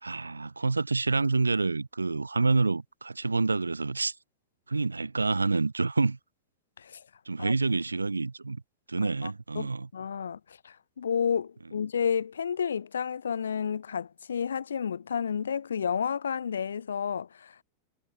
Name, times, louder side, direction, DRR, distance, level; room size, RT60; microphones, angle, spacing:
voice 1, 0.0-4.1 4.7-6.2 7.3-8.6 8.9-9.9, right 3 dB, 85° right, 2.0 m, -27 dB
voice 2, 9.0-9.7 9.9-17.6, left 7 dB, 75° left, 1.4 m, -31 dB
figure-of-eight pair, 90°, 0 cm